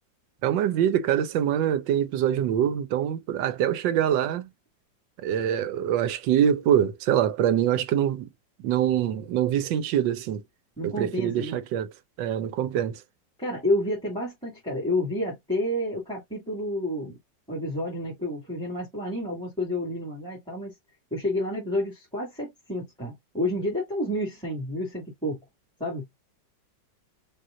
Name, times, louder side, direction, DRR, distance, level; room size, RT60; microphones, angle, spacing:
voice 1, 0.4-4.5 5.2-8.3 8.6-10.4 10.8-11.9 12.2-13.0, right 10 dB, 80° right, 1.4 m, -24 dB
voice 2, 10.8-11.6 13.4-17.2 17.5-20.7 21.1-25.4 25.8-26.0, left 1 dB, ahead, 2.0 m, -30 dB
5.6 x 2.9 x 2.6 m
omnidirectional pair, 2.0 m